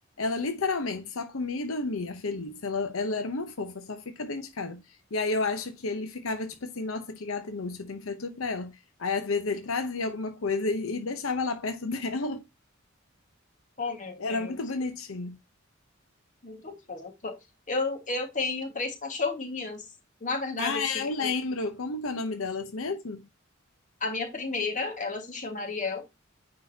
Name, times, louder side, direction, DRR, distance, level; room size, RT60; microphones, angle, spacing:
voice 1, 0.2-4.8 5.1-8.7 9.0-12.4 14.2-15.4 20.6-23.3, left 3 dB, 85° left, 0.8 m, -31 dB
voice 2, 13.8-14.6 16.4-17.4 17.7-19.9 20.2-21.3 24.0-26.0, left 3 dB, 40° left, 1.7 m, -32 dB
9.4 x 3.8 x 2.7 m
head